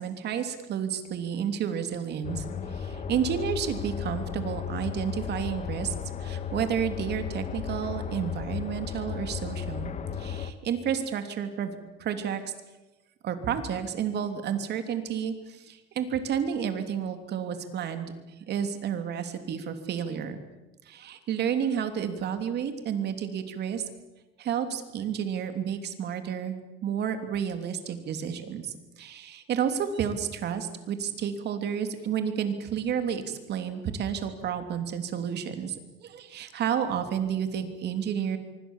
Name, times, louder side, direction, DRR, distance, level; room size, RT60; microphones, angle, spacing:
voice 1, 0.0-5.9 6.2-12.5 13.2-18.1 18.5-20.4 20.8-23.9 24.4-38.4, right 8 dB, 50° right, 8 dB, 3.1 m, -31 dB
sound 1, 2.2-10.5, left 7 dB, 35° left, 1.6 m, -35 dB
25.5 x 24.0 x 7.4 m, 1.1 s
cardioid pair, 140°, 21 cm